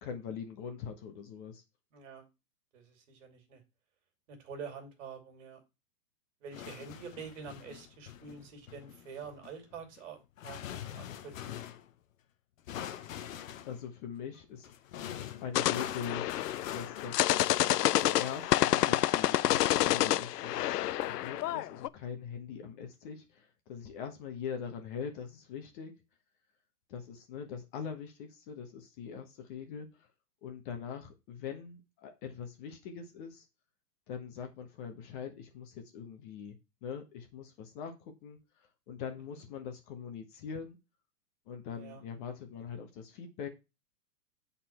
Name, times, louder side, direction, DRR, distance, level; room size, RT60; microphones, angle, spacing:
voice 1, 0.0-1.6 13.6-14.7 15.4-16.2 16.7-17.3 17.9-25.9 26.9-30.1 30.4-33.4 34.1-36.6 36.8-38.4 38.9-40.8 41.5-43.5, left 7 dB, 30° left, 1.3 m, -42 dB
voice 2, 1.9-2.3 2.7-3.6 4.3-5.6 6.4-10.2 10.4-11.6 41.7-42.0, right 5 dB, 50° right, 2.6 m, -47 dB
sound 1, 6.5-11.9 12.7-13.9 14.6-19.9 20.8-21.5, left 10 dB, 55° left, 0.9 m, -45 dB
sound 2, 15.6-21.9, left 14 dB, 80° left, 0.5 m, -28 dB
7.7 x 4.3 x 4.4 m
hypercardioid pair, 150°, 48 cm